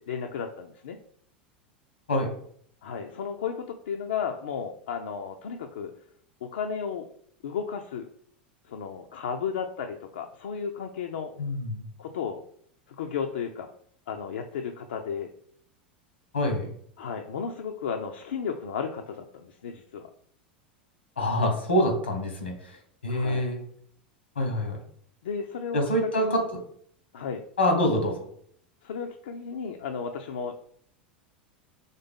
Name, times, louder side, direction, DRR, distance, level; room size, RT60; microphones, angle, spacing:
voice 1, 0.1-1.0 2.8-5.9 6.4-7.1 7.4-8.1 8.7-11.3 12.0-12.4 12.9-13.7 14.1-15.3 17.0-20.1 23.1-23.5 25.2-25.8 26.2-26.4 27.1-27.4 28.8-30.5, left 6 dB, 75° left, 4 dB, 0.4 m, -34 dB
voice 2, 11.4-11.8 16.3-16.7 21.2-22.8 23.0-23.6 24.3-24.8 25.7-26.6 27.6-28.2, left 1 dB, 90° left, 4 dB, 1.2 m, -26 dB
4.0 x 3.5 x 3.6 m, 0.62 s
hypercardioid pair, 90°, 6 cm